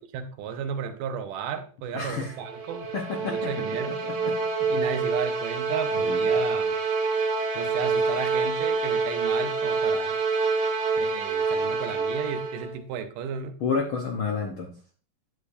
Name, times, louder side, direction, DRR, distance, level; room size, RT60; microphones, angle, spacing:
voice 1, 0.1-2.9 3.2-4.0 4.7-6.8 7.5-10.2 11.0-13.6, right 7 dB, 85° right, 8 dB, 2.5 m, -34 dB
voice 2, 1.9-2.3 2.9-3.5 3.9-4.3 6.1-6.2 13.6-14.7, left 5 dB, 75° left, 2 dB, 1.1 m, -30 dB
sound 1, 2.2-12.8, right 4 dB, 65° right, 2.8 m, -27 dB
10.0 x 8.3 x 2.6 m, 0.39 s
omnidirectional pair, 3.7 m